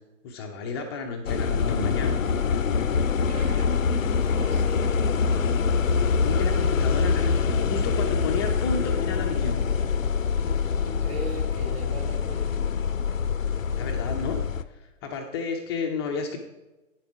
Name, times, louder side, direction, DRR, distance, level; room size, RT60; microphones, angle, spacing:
voice 1, 0.2-2.2 5.9-9.6 13.7-14.4 14.7-16.4, left 4 dB, 20° left, 3 dB, 0.5 m, -32 dB
sound 1, 1.3-14.6, left 5 dB, 80° left, 0.6 m, -25 dB
voice 2, 3.2-5.0 10.8-12.6, right 1 dB, 50° right, 2 dB, 2.2 m, -39 dB
9.4 x 7.0 x 4.6 m, 1.1 s
figure-of-eight pair, 115°, 39 cm